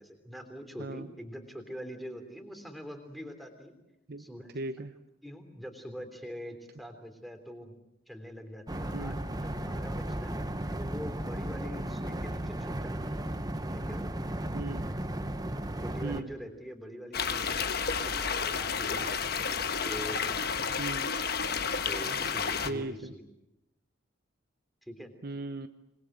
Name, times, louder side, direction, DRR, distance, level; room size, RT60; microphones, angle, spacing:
voice 1, 0.0-3.7 4.2-4.5 5.2-7.7 8.1-10.3 10.8-13.2 13.6-14.1 15.8-19.6 19.8-20.8 21.9-23.2 24.8-25.1, equal, ahead, 6 dB, 3.3 m, -44 dB
voice 2, 4.5-4.9 8.9-9.2 14.5-14.8 16.0-16.3 20.8-21.1 22.6-23.1 25.2-25.7, right 2 dB, 50° right, 9 dB, 0.8 m, -37 dB
sound 1, 8.7-16.2, right 1 dB, 20° right, 1.0 m, -35 dB
sound 2, 17.1-22.7, left 6 dB, 50° left, 1.3 m, -31 dB
26.5 x 21.0 x 7.9 m, 0.88 s
head